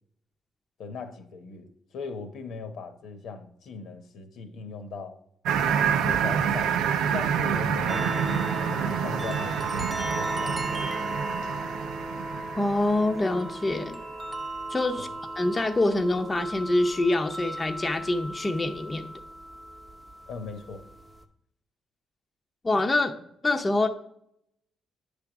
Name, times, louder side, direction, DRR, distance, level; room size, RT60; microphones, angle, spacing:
voice 1, 0.8-5.2 6.0-10.8 15.0-15.1 20.3-20.8, left 4 dB, 75° left, 0.9 m, -39 dB
sound 1, 5.4-13.5, right 7 dB, 90° right, 0.5 m, -28 dB
sound 2, 7.9-21.2, right 2 dB, 25° right, 0.8 m, -36 dB
voice 2, 12.6-14.0 14.7-15.1 15.4-19.1 22.6-23.1 23.4-23.9, left 2 dB, 25° left, 0.6 m, -25 dB
9.5 x 3.5 x 5.9 m
cardioid pair, 90°, 0 cm